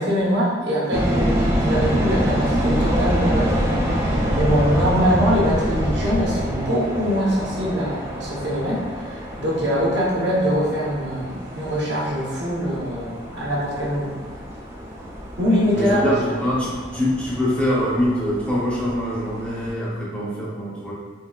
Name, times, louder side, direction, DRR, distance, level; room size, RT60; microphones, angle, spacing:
voice 1, 0.0-1.3 1.6-3.6 3.8-14.1 15.4-16.1, equal, 60° right, -6 dB, 0.9 m, -23 dB
sound 1, 0.9-19.7, equal, 15° right, 0.3 m, -26 dB
voice 2, 15.7-20.9, equal, 5° left, -7 dB, 0.7 m, -24 dB
3.7 x 2.6 x 2.3 m, 1.4 s
head